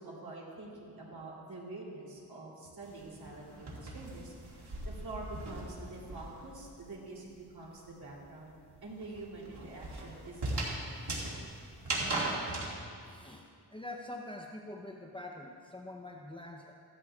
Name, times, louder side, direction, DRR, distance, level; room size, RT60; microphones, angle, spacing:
voice 1, 0.0-8.5 8.8-11.0, right 2 dB, 65° right, -4 dB, 3.2 m, -46 dB
sound 1, 2.8-6.6 6.8-12.7, right 2 dB, 85° right, 2.2 m, -38 dB
voice 2, 13.0-13.5 13.7-16.7, left 1 dB, 15° left, 0 dB, 0.7 m, -45 dB
16.0 x 12.5 x 2.4 m, 2.3 s
wide cardioid pair, 70°, 40 cm